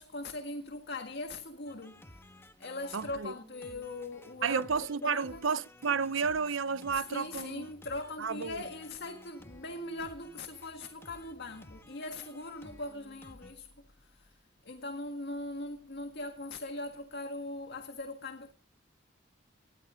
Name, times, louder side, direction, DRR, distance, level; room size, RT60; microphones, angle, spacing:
voice 1, 0.0-2.2 2.6-4.7 5.0-5.4 6.9-13.7 14.0-14.3 14.7-18.5, left 2 dB, 60° left, 1.8 m, -40 dB
sound 1, 1.7-13.5, left 1 dB, 15° left, 1.3 m, -55 dB
voice 2, 2.9-3.3 4.4-7.6 8.2-8.7, right 5 dB, 85° right, 0.7 m, -32 dB
19.0 x 11.5 x 5.1 m
head